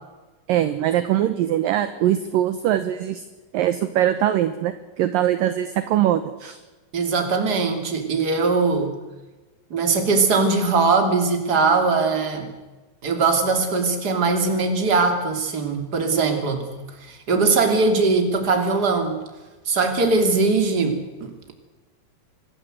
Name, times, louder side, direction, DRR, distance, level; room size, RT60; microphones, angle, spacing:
voice 1, 0.5-3.2 3.5-6.6, right 12 dB, 70° right, 11 dB, 2.3 m, -22 dB
voice 2, 6.9-8.9 9.7-12.5 13.0-16.7 17.0-19.2 19.6-21.5, right 4 dB, 25° right, 5 dB, 2.8 m, -21 dB
24.5 x 14.0 x 8.0 m, 1.2 s
omnidirectional pair, 4.8 m